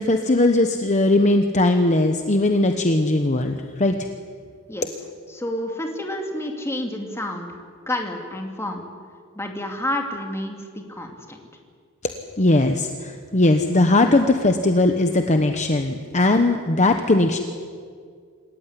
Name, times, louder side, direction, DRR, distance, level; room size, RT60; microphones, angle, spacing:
voice 1, 0.0-3.9 12.4-17.4, left 2 dB, 35° left, 5 dB, 1.1 m, -19 dB
voice 2, 5.3-7.5 7.9-8.8 9.3-11.4, left 1 dB, 10° left, 2 dB, 2.7 m, -29 dB
27.0 x 15.0 x 10.0 m, 2.1 s
head